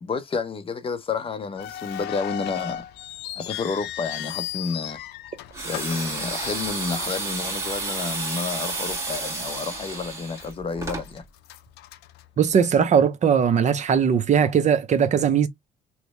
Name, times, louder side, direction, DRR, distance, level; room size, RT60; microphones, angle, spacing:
voice 1, 0.0-2.8 3.4-5.0 5.6-11.2, left 4 dB, 30° left, 0.8 m, -30 dB
sound 1, 1.6-6.9 7.2-7.3 8.0-8.2 8.7-8.8 9.4-10.0 10.3-12.8, left 12 dB, 85° left, 0.5 m, -36 dB
sound 2, 5.5-11.1, right 2 dB, 15° right, 1.9 m, -31 dB
voice 2, 12.4-15.5, right 7 dB, 45° right, 0.7 m, -19 dB
3.1 x 2.5 x 3.1 m
cardioid pair, 110°, 17 cm